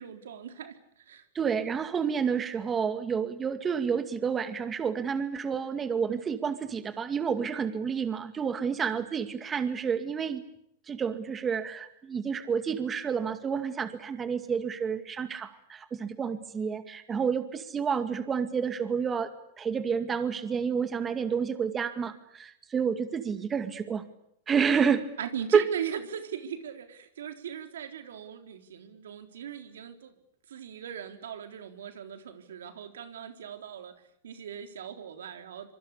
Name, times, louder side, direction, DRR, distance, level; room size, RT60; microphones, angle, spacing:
voice 1, 0.0-1.2 25.2-30.1 30.5-33.9 34.2-35.7, right 8 dB, 85° right, 7 dB, 3.8 m, -39 dB
voice 2, 1.3-10.4 10.9-19.3 19.6-24.0 24.5-25.0 25.5-25.6, right 6 dB, 20° right, 10 dB, 2.2 m, -29 dB
26.0 x 24.5 x 8.5 m, 0.76 s
hypercardioid pair, 120°, 0 cm